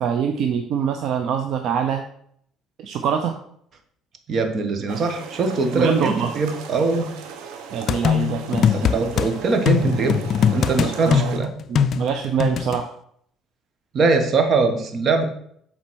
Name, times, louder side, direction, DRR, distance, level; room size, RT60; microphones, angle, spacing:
voice 1, 0.0-2.0 2.8-3.4 5.7-6.3 7.7-8.8 11.0-11.4 11.7-12.9, right 7 dB, 60° right, 6 dB, 0.7 m, -24 dB
voice 2, 4.3-7.1 8.7-10.2 10.5-11.5 13.9-15.2, right 3 dB, 45° right, 6 dB, 1.3 m, -21 dB
sound 1, 4.9-11.4, right 6 dB, 85° right, 1.1 m, -37 dB
sound 2, 7.9-9.3 9.7-12.8, left 7 dB, 50° left, 0.4 m, -21 dB
7.5 x 4.2 x 6.3 m, 0.67 s
cardioid pair, 125°, 0 cm